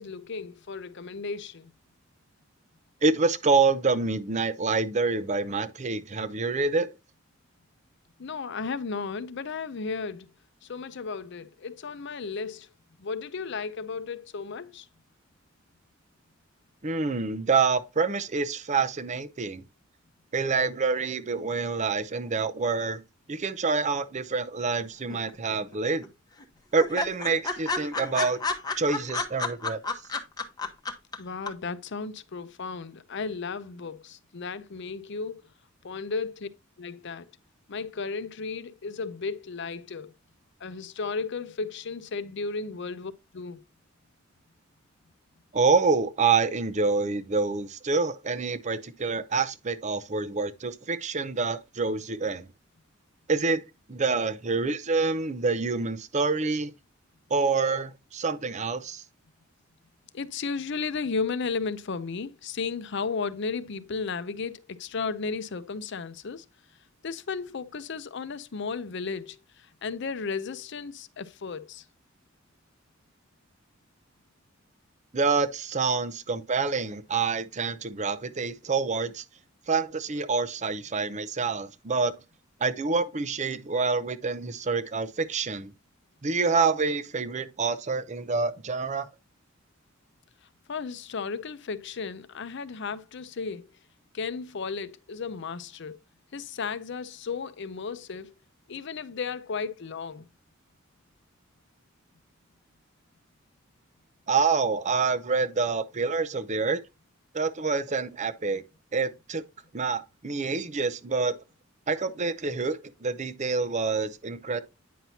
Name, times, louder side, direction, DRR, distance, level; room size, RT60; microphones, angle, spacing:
voice 1, 0.0-1.7 8.2-10.3 10.7-12.7 13.0-14.9 31.2-35.4 35.8-36.5 36.8-37.3 37.7-40.1 40.6-43.6 60.1-66.4 67.0-71.8 90.7-93.7 94.1-96.0 96.3-98.3 98.7-100.3, left 4 dB, 60° left, 0.6 m, -34 dB
voice 2, 3.0-6.9 16.8-19.6 20.3-23.0 23.3-26.1 26.7-28.4 28.8-29.8 45.5-52.5 53.3-53.6 53.9-56.7 57.3-59.0 75.1-79.2 79.7-82.1 82.6-85.7 86.2-89.1 104.3-106.8 107.3-108.6 108.9-109.4 109.7-111.4 111.9-114.6, right 4 dB, 35° right, 0.6 m, -27 dB
sound 1, 25.1-25.7 26.0-26.1 26.4-26.5 26.8-31.2 31.5-31.6, left 3 dB, 20° left, 0.9 m, -30 dB
9.3 x 5.8 x 2.8 m
head